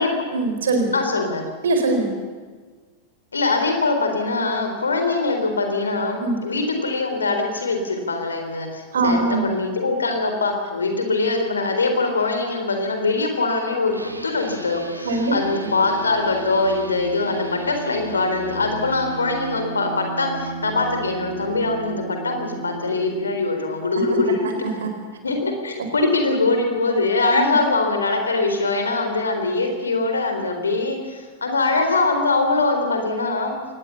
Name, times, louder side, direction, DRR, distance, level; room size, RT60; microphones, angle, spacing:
voice 1, 0.3-0.9 1.6-2.1 6.2-6.4 8.9-9.4 15.0-15.3 24.6-24.9 27.3-27.5, right 3 dB, 65° right, 6 dB, 4.4 m, -21 dB
voice 2, 0.9-1.4 3.3-14.0 14.2-24.5 25.2-33.6, left 3 dB, 75° left, 5 dB, 4.0 m, -22 dB
sound 1, 13.9-23.3, right 3 dB, 85° right, 1.6 m, -34 dB
23.0 x 19.0 x 7.2 m, 1.4 s
figure-of-eight pair, 90°, 0 cm